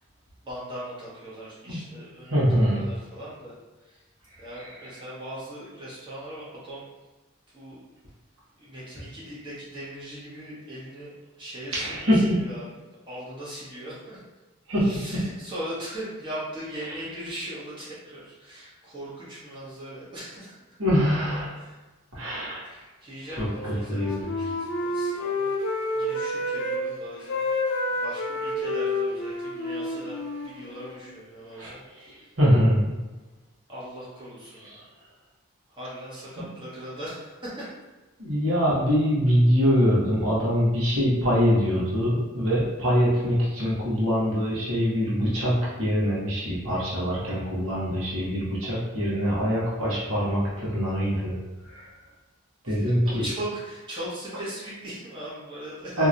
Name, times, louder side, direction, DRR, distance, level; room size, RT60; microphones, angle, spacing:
voice 1, 0.4-4.0 4.4-6.9 7.5-7.8 8.6-12.7 13.1-14.2 14.8-20.6 21.5-21.8 22.6-25.5 25.9-27.4 28.0-31.9 32.2-32.3 33.7-34.8 35.7-37.7 52.6-56.0, right 1 dB, 20° right, -9 dB, 1.1 m, -39 dB
voice 2, 2.3-2.9 11.7-12.4 14.7-15.2 20.8-21.6 22.1-22.7 23.4-23.5 23.9-24.2 31.6-31.7 32.4-32.9 38.2-51.3 51.7-51.9 52.6-53.2 56.0-56.1, equal, 80° right, -7 dB, 1.3 m, -23 dB
Wind instrument woodwind instrument, 23.4-26.8 27.1-31.0, left 1 dB, 60° left, 0.5 m, -29 dB
2.9 x 2.8 x 2.5 m, 1.2 s
head